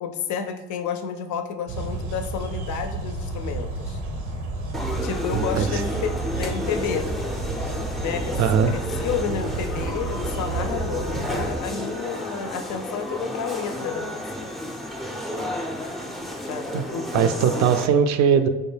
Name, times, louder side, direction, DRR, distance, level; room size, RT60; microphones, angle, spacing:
voice 1, 0.0-4.0 5.0-7.1 8.0-8.4 8.7-14.2 16.5-17.4, left 7 dB, 60° left, 7 dB, 0.5 m, -31 dB
sound 1, 1.7-11.6, right 3 dB, 80° right, 0.8 m, -31 dB
sound 2, 4.7-17.9, left 1 dB, ahead, 0.5 m, -32 dB
voice 2, 5.3-5.7 8.4-8.7 16.7-16.8 17.1-18.5, right 7 dB, 55° right, 9 dB, 0.4 m, -20 dB
4.6 x 2.1 x 3.3 m, 1.1 s
supercardioid pair, 60°, 33 cm